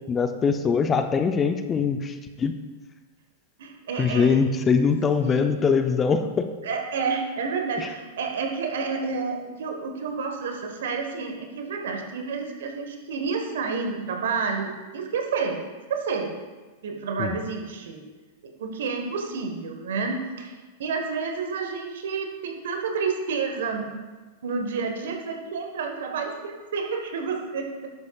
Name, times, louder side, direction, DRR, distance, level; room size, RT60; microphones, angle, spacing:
voice 1, 0.1-2.6 4.0-6.5 7.8-7.9 17.2-17.4, left 5 dB, 25° left, 8 dB, 0.6 m, -22 dB
voice 2, 3.6-4.4 5.2-5.5 6.6-15.6 15.9-16.3 16.8-18.0 18.6-23.9 24.4-27.9, right 5 dB, 70° right, 3 dB, 1.4 m, -30 dB
11.5 x 8.2 x 2.4 m, 1.3 s
hypercardioid pair, 100°, 0 cm